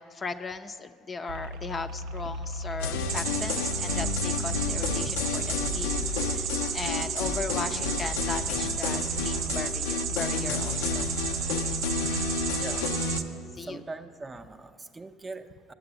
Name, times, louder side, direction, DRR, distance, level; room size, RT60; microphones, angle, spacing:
voice 1, 0.0-11.1 13.5-13.8, left 4 dB, 30° left, 9 dB, 0.5 m, -37 dB
sound 1, 1.3-12.8, equal, 85° right, 0.3 m, -38 dB
sound 2, 2.8-13.2, left 5 dB, 85° left, 0.5 m, -31 dB
sound 3, 3.1-13.2, right 7 dB, 60° right, 0.7 m, -33 dB
voice 2, 12.5-12.9 13.6-15.7, right 3 dB, 20° right, 7 dB, 0.6 m, -42 dB
8.8 x 7.8 x 7.9 m, 2.2 s
supercardioid pair, 90°, 0 cm